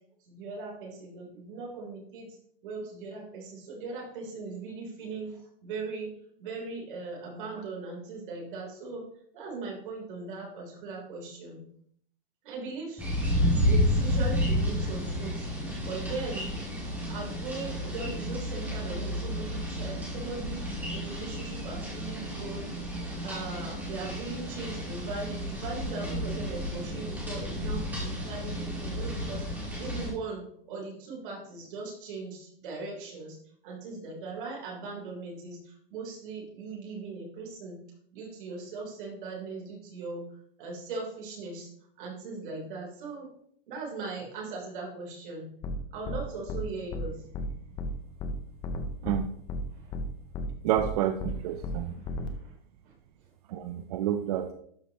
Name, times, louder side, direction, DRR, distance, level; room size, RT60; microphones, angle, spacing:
voice 1, 0.2-6.1 6.4-11.6 12.4-13.1 13.7-16.5 17.1-22.7 23.2-33.4 33.6-37.8 38.1-41.7 42.0-43.3 43.7-45.5 45.9-47.2 49.7-49.9 51.6-52.5 52.8-52.9 53.2-53.3, right 3 dB, 60° right, -1 dB, 3.4 m, -39 dB
sound 1, 13.0-30.1, equal, 5° right, 1.9 m, -31 dB
sound 2, 45.6-45.8 46.0-46.2 46.5-46.6 46.9-47.0 47.3-47.5 47.8-47.9 48.2-48.3 48.6-49.2 49.5-49.6 49.9-50.0 50.3-50.5 50.8-50.9 51.2-51.3 51.6-51.8 52.0-52.3, left 3 dB, 15° left, 0.5 m, -33 dB
voice 2, 50.6-51.9 53.5-54.5, right 11 dB, 45° right, 8 dB, 0.5 m, -29 dB
12.0 x 4.9 x 2.9 m, 0.65 s
hypercardioid pair, 155°, 29 cm